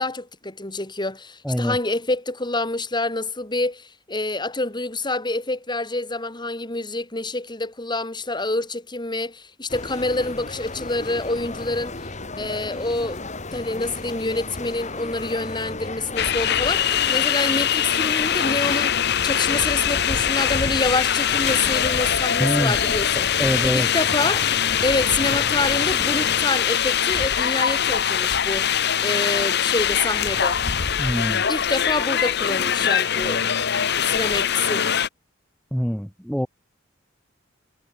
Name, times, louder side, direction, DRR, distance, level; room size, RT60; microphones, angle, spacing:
voice 1, 0.0-12.0 12.4-23.3 23.6-24.5 24.8-28.7 29.0-30.6 31.5-33.5 34.1-34.9, left 2 dB, 25° left, 5.7 m, -27 dB
voice 2, 1.4-1.8 22.4-22.8 23.1-23.9 31.0-31.5 35.7-36.5, equal, ahead, 2.1 m, -24 dB
sound 1, 9.7-26.5, left 3 dB, 40° left, 4.6 m, -34 dB
sound 2, 16.2-35.1, left 9 dB, 60° left, 1.3 m, -22 dB
head